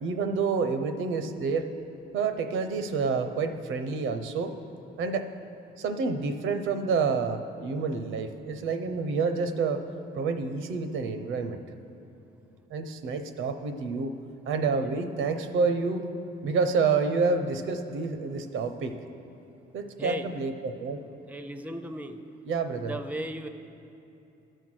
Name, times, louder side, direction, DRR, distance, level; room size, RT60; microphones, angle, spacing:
voice 1, 0.0-1.6 2.1-4.5 5.0-5.2 5.8-9.8 10.2-11.6 12.7-14.1 14.5-16.0 16.4-18.9 19.7-21.0 22.5-22.9, right 4 dB, 80° right, 8 dB, 0.7 m, -28 dB
voice 2, 21.3-22.2 22.8-23.5, right 1 dB, 5° right, 9 dB, 0.5 m, -36 dB
13.5 x 4.5 x 6.2 m, 2.9 s
cardioid pair, 90°, 20 cm